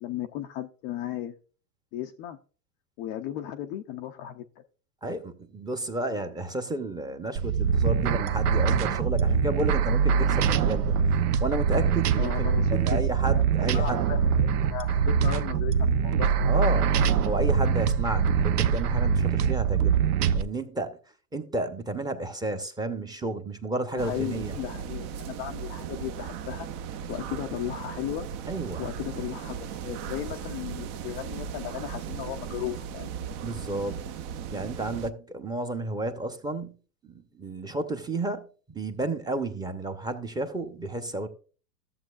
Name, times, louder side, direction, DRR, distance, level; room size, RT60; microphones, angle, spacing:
voice 1, 0.0-1.3 1.9-2.4 3.0-4.4 12.2-13.0 13.3-16.6 23.9-26.7 27.1-28.3 28.8-33.1, left 12 dB, 25° left, 0.4 m, -36 dB
voice 2, 5.0-11.0 11.4-14.2 16.4-16.9 17.2-20.0 20.3-21.0 21.3-24.5 28.5-28.8 33.4-34.0 34.5-36.8 37.0-41.3, right 2 dB, 10° right, 0.8 m, -32 dB
sound 1, 7.4-20.4, right 6 dB, 65° right, 0.8 m, -23 dB
sound 2, 24.0-35.1, right 7 dB, 35° right, 0.6 m, -37 dB
14.0 x 7.7 x 2.4 m
hypercardioid pair, 115°, 49 cm